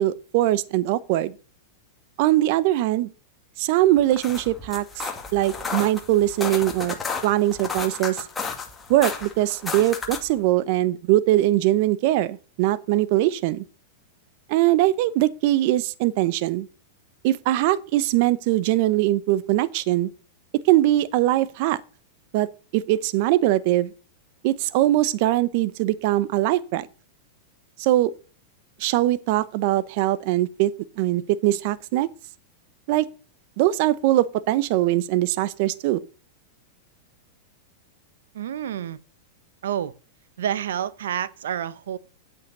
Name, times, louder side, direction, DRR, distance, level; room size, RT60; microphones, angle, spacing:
voice 1, 0.0-1.3 2.2-3.1 3.6-4.8 5.3-7.0 7.2-8.2 8.9-13.6 14.5-16.7 17.2-20.1 20.7-21.8 22.3-22.5 22.7-23.9 24.4-26.9 27.8-28.1 28.8-30.7 31.0-32.1 32.9-33.1 33.6-36.0, right 15 dB, 55° right, 0.8 m, -21 dB
sound 1, 4.0-10.4, left 5 dB, 15° left, 2.3 m, -33 dB
voice 2, 38.3-39.0 39.6-39.9 40.4-42.0, right 10 dB, 80° right, 0.9 m, -28 dB
9.7 x 8.4 x 6.7 m
hypercardioid pair, 130°, 0 cm